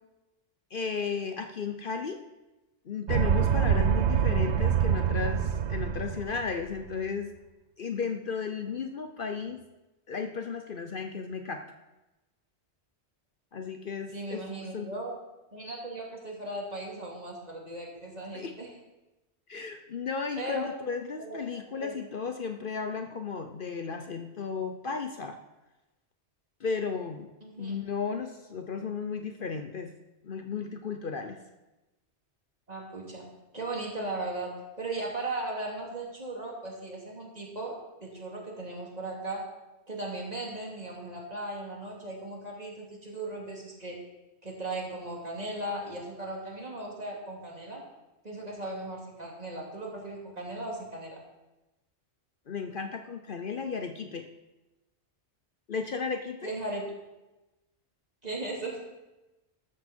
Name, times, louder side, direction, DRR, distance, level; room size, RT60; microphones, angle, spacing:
voice 1, 0.7-2.2 2.9-7.3 7.8-9.6 10.1-11.6 13.5-14.4 14.7-14.9 18.3-18.5 19.5-25.4 26.6-27.3 27.6-29.9 30.2-31.4 52.5-54.3 55.7-56.5, left 5 dB, 55° left, 6 dB, 0.9 m, -34 dB
sound 1, 3.1-6.6, right 8 dB, 75° right, 1.1 m, -25 dB
voice 2, 14.1-15.1 15.5-18.7 20.4-20.7 21.2-21.9 27.4-27.8 32.7-33.3 33.5-39.5 39.9-44.0 44.4-47.8 48.2-51.2 56.4-56.9 58.2-58.8, right 2 dB, 35° right, -2 dB, 3.0 m, -37 dB
13.5 x 13.5 x 4.4 m, 1.0 s
omnidirectional pair, 1.1 m